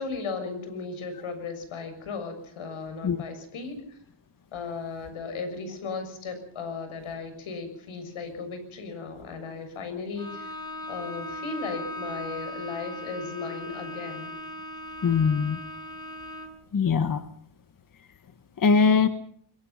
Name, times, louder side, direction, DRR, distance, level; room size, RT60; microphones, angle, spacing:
voice 1, 0.0-4.0 4.5-10.5 10.9-14.3, left 4 dB, 85° left, 8 dB, 6.8 m, -36 dB
Bowed string instrument, 10.1-16.7, left 1 dB, 10° left, 6.8 m, -38 dB
voice 2, 15.0-15.6 16.7-17.2 18.6-19.1, left 5 dB, 45° left, 9 dB, 1.4 m, -21 dB
23.0 x 23.0 x 5.8 m, 0.63 s
cardioid pair, 100°, 48 cm